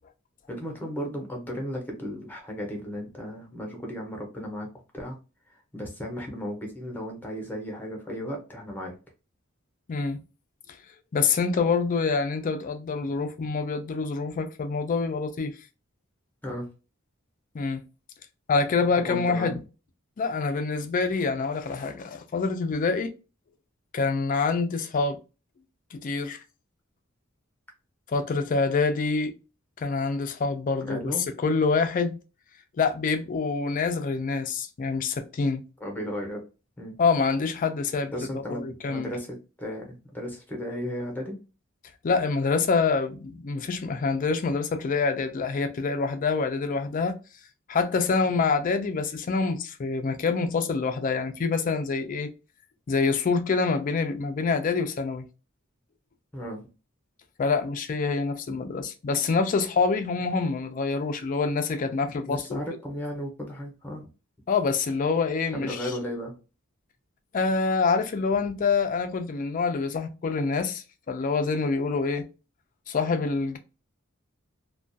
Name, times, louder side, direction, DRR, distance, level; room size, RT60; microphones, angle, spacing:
voice 1, 0.5-5.2 5.5-9.0 16.4-16.7 19.0-19.6 30.8-31.2 35.8-36.4 36.8-37.0 38.1-41.4 56.3-56.6 62.3-64.1 65.5-66.3, equal, 10° left, 0.7 m, -35 dB
voice 2, 11.1-15.5 17.5-17.8 18.5-19.6 20.2-23.1 23.9-25.2 25.9-26.4 28.1-29.3 29.8-31.1 31.4-32.2 32.8-35.6 37.0-39.1 42.0-47.1 47.7-52.3 52.9-55.2 57.4-62.6 64.5-65.9 67.3-72.3 72.9-73.6, left 4 dB, 40° left, 0.4 m, -26 dB
2.3 x 2.2 x 2.6 m
head